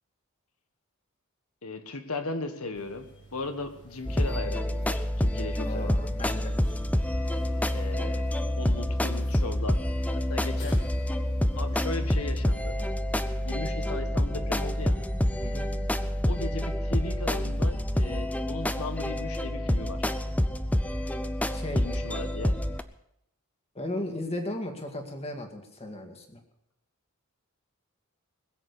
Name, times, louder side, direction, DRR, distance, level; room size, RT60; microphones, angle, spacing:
voice 1, 1.6-6.0 7.7-8.3 8.6-9.8 10.1-10.8 11.6-12.8 13.4-15.0 16.2-20.1 21.7-22.6, left 3 dB, 85° left, 8 dB, 1.7 m, -37 dB
sound 1, 2.7-11.8, right 1 dB, 60° left, 3.4 m, -51 dB
sound 2, 4.1-22.8, left 1 dB, 5° left, 0.6 m, -28 dB
voice 2, 5.7-6.5 15.4-15.7 21.5-21.8 23.7-26.4, left 1 dB, 30° left, 4 dB, 2.1 m, -36 dB
20.5 x 7.9 x 6.8 m, 0.77 s
head